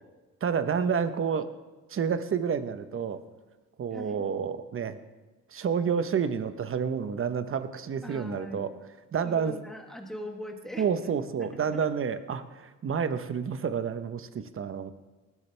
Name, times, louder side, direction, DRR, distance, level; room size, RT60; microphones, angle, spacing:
voice 1, 0.4-1.5 1.9-3.2 3.8-5.0 5.5-8.7 9.1-9.5 10.8-14.9, right 6 dB, 45° right, 11 dB, 1.0 m, -29 dB
voice 2, 3.9-4.3 8.0-8.6 9.2-10.9 11.4-11.9, equal, ahead, 1 dB, 2.1 m, -41 dB
19.0 x 12.0 x 3.4 m, 1.2 s
cardioid pair, 90°, 30 cm